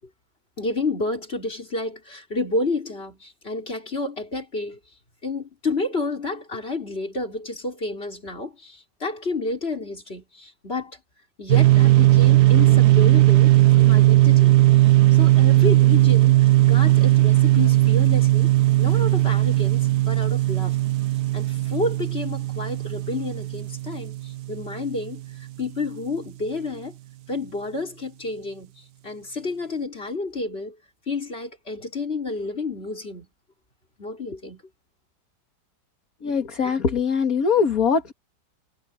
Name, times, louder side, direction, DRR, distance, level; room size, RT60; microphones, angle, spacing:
voice 1, 0.6-4.8 5.2-11.0 11.4-14.6 15.1-18.5 18.8-20.8 21.3-26.9 27.3-30.8 31.1-33.3 34.0-34.6, left 3 dB, 35° left, 4.5 m, -30 dB
sound 1, 11.5-25.0, right 16 dB, 70° right, 1.2 m, -17 dB
voice 2, 36.2-38.1, left 6 dB, 55° left, 2.4 m, -22 dB
omnidirectional pair, 1.9 m